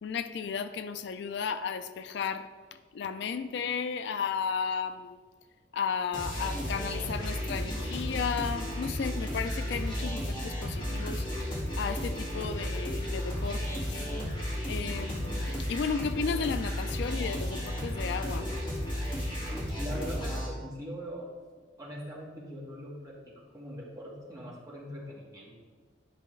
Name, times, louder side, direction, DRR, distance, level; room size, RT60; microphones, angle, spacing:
voice 1, 0.0-2.5 2.9-5.2 5.7-11.3 11.8-14.0 14.7-18.5, left 6 dB, 65° left, 11 dB, 0.3 m, -34 dB
sound 1, 6.1-20.5, equal, 25° left, 1.8 m, -33 dB
voice 2, 19.7-21.3 21.8-25.6, equal, 20° right, -5 dB, 1.6 m, -41 dB
10.0 x 5.4 x 3.2 m, 1.5 s
head